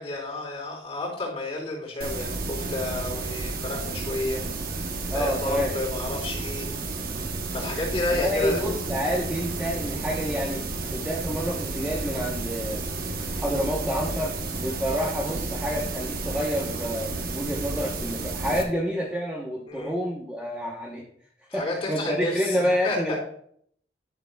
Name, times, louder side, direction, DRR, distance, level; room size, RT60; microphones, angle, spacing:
voice 1, 0.0-4.4 4.7-6.7 7.5-8.6 14.9-15.1 19.7-19.9 21.5-23.2, left 2 dB, 35° left, -5 dB, 3.4 m, -31 dB
sound 1, 2.0-18.6, right 3 dB, 55° right, 0.9 m, -32 dB
voice 2, 5.1-5.7 8.1-10.6 10.9-12.9 13.3-21.0 21.5-23.1, equal, 5° right, -2 dB, 0.9 m, -28 dB
11.5 x 6.6 x 2.3 m, 0.63 s
head